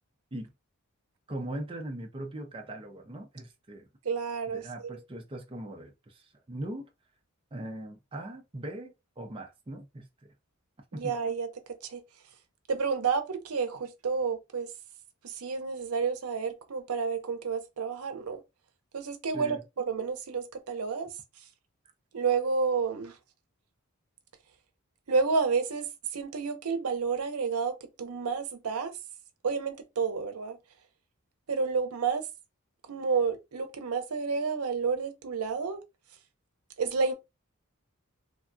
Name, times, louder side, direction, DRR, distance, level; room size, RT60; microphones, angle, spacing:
voice 1, 1.3-3.9 4.5-6.9 7.5-10.3 10.9-11.1 19.3-19.6, right 1 dB, 25° right, 0.5 m, -40 dB
voice 2, 4.0-5.0 10.9-11.5 11.8-12.0 12.7-14.7 15.2-18.4 18.9-21.1 22.1-23.2 25.1-25.9 26.1-29.0 29.4-30.6 31.5-32.3 32.8-35.8 36.8-37.1, right 5 dB, 90° right, 0.6 m, -30 dB
3.3 x 2.1 x 2.5 m
head